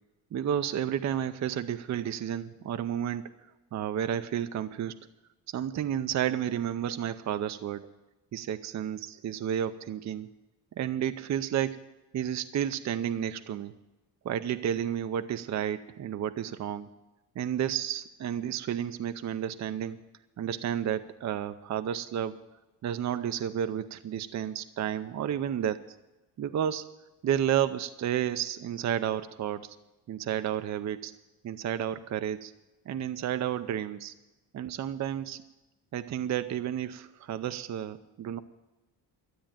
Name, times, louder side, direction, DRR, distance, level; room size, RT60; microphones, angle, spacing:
voice 1, 0.3-3.3 3.7-5.0 5.5-7.9 8.3-10.3 10.8-11.8 12.1-13.7 14.2-16.9 17.4-20.0 20.4-22.4 22.8-26.0 26.4-26.9 27.2-29.8 30.1-31.1 31.4-32.5 32.9-34.1 34.5-35.4 35.9-38.4, right 10 dB, 45° right, 11 dB, 0.6 m, -31 dB
13.0 x 8.8 x 8.9 m, 1.0 s
cardioid pair, 140°, 40 cm